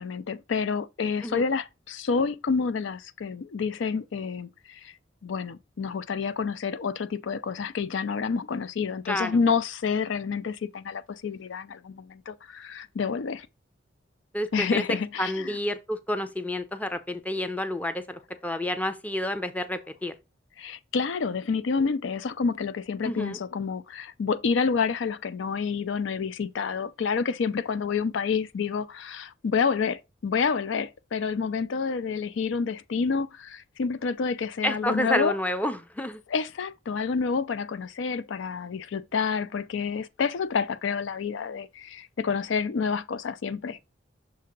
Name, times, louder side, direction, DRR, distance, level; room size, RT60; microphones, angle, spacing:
voice 1, 0.0-4.9 5.2-13.5 14.5-15.6 20.6-35.4 36.3-43.8, left 5 dB, 75° left, 0.4 m, -28 dB
voice 2, 9.1-9.4 14.3-14.8 15.2-20.1 23.0-23.4 34.6-36.2, left 1 dB, 10° left, 0.5 m, -29 dB
6.6 x 2.8 x 5.1 m
head